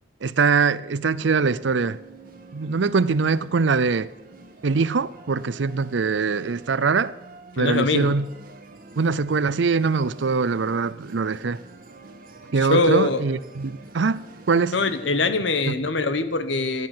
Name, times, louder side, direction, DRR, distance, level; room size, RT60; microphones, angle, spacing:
voice 1, 0.2-2.0 2.5-4.1 4.6-7.1 7.6-8.3 9.0-11.6 12.5-14.8 15.7-15.8, right 4 dB, 70° right, 0.5 m, -22 dB
sound 1, 1.0-15.7, right 2 dB, 50° right, 1.6 m, -47 dB
voice 2, 7.6-8.1 12.6-13.2 14.7-16.9, left 3 dB, 75° left, 1.1 m, -22 dB
14.5 x 9.8 x 7.7 m
head